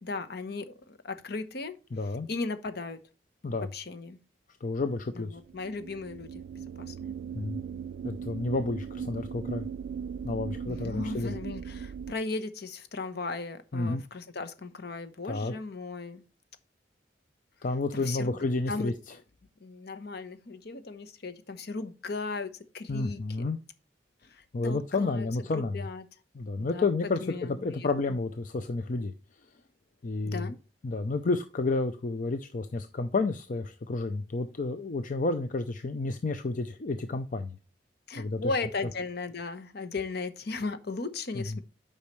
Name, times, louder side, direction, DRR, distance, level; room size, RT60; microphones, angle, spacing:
voice 1, 0.0-1.8 2.3-3.0 3.7-4.2 5.1-7.1 10.7-16.2 17.9-18.4 18.7-18.9 19.6-23.5 24.3-25.3 25.5-26.0 26.6-26.9 27.2-28.2 30.2-30.5 38.1-41.6, left 3 dB, 60° left, 0.9 m, -37 dB
voice 2, 1.9-2.3 3.4-3.7 4.6-5.4 7.3-7.6 8.0-9.6 10.2-11.3 13.7-14.0 15.3-15.5 17.6-18.9 22.9-23.6 24.5-25.7 26.3-27.3 27.6-29.1 30.0-30.5 30.8-37.6 38.1-38.4 41.4-41.6, left 3 dB, 45° left, 0.5 m, -30 dB
sound 1, 5.4-12.1, right 7 dB, 85° right, 0.3 m, -38 dB
8.5 x 5.5 x 3.1 m
head